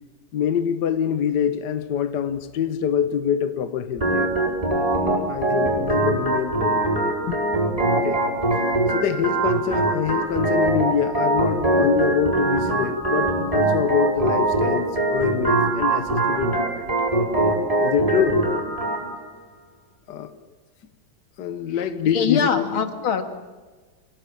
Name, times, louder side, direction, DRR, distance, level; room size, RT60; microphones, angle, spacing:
voice 1, 0.3-4.3 5.3-7.0 7.3-7.4 7.9-8.2 8.9-16.9 17.8-18.4 20.1-20.3 21.4-22.6, left 8 dB, 60° left, 10 dB, 1.6 m, -25 dB
Organ, 4.0-19.0, right 2 dB, 15° right, 5.4 m, -22 dB
voice 2, 21.7-23.2, left 7 dB, 80° left, 7 dB, 2.6 m, -23 dB
26.5 x 17.5 x 8.8 m, 1.3 s
omnidirectional pair, 2.2 m